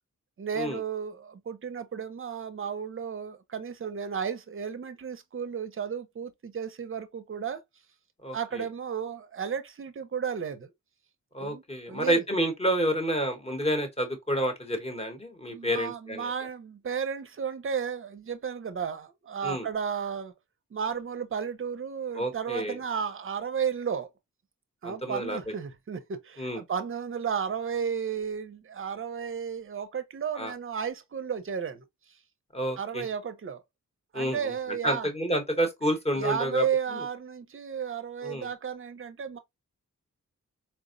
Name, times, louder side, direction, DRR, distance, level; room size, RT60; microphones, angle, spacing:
voice 1, 0.4-7.6 8.3-10.7 11.4-12.2 15.5-20.3 20.7-24.1 24.8-31.8 32.8-33.6 34.1-35.1 36.2-39.4, right 7 dB, 40° right, 0.5 m, -33 dB
voice 2, 8.2-8.6 11.3-16.3 19.4-19.6 22.2-22.8 24.8-25.4 26.4-26.6 30.3-30.5 32.5-33.0 34.1-36.6 36.9-37.0 38.2-38.5, right 1 dB, 20° left, 0.9 m, -29 dB
4.3 x 2.0 x 2.4 m
wide cardioid pair, 175°, 32 cm